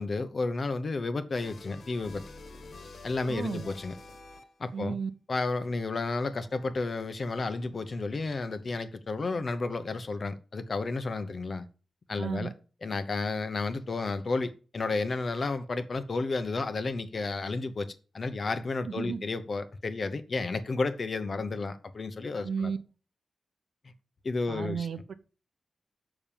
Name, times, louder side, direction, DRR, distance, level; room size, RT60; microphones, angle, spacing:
voice 1, 0.0-2.2 3.0-3.9 4.6-5.0 5.3-11.7 12.1-12.5 12.8-22.7 24.2-24.9, left 3 dB, 45° left, 0.9 m, -32 dB
sound 1, 1.3-4.8, left 3 dB, 60° left, 1.6 m, -47 dB
voice 2, 3.3-3.7 4.7-5.1 12.2-12.5 18.9-19.2 22.4-22.8 24.5-25.1, right 6 dB, 70° right, 0.9 m, -33 dB
7.0 x 6.2 x 7.3 m
wide cardioid pair, 145°, 0 cm